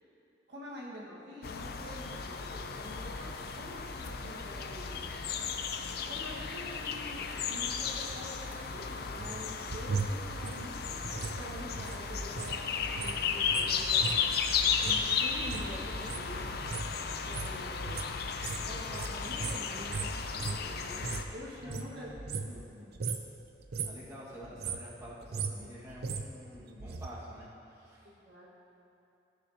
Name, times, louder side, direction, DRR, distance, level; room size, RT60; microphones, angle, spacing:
voice 1, 0.5-5.1 6.1-14.5 14.8-16.7 17.2-18.0 18.6-22.1 22.4-22.6 28.0-28.5, equal, 75° right, -5 dB, 1.6 m, -46 dB
sound 1, 1.4-21.3, left 6 dB, 60° left, 0.5 m, -34 dB
sound 2, 9.2-12.6 12.8-21.3 21.6-22.7 22.9-23.3 23.6-24.1 24.4-27.1 27.4-27.5, right 4 dB, 60° right, 0.5 m, -38 dB
voice 2, 21.6-23.0 23.8-28.1, equal, 15° right, -8 dB, 1.6 m, -48 dB
14.5 x 6.6 x 2.8 m, 3.0 s
head